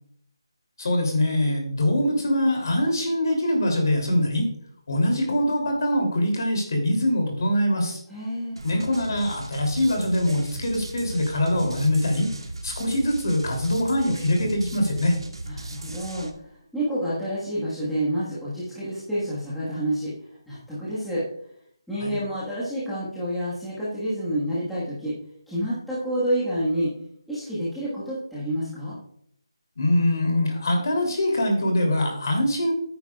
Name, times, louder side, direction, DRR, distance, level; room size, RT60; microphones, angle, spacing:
voice 1, 0.8-4.5 4.9-8.0 8.6-12.3 12.6-15.1 22.0-22.2 29.8-32.7, left 1 dB, 45° left, 2 dB, 3.0 m, -23 dB
voice 2, 8.1-8.6 15.4-20.1 20.5-21.2 21.9-25.1 25.5-26.9 27.3-29.0, equal, ahead, -13 dB, 1.5 m, -28 dB
sound 1, 8.6-16.3, right 2 dB, 80° right, 1.8 m, -37 dB
12.5 x 9.6 x 2.4 m, 0.68 s
figure-of-eight pair, 175°, 3 cm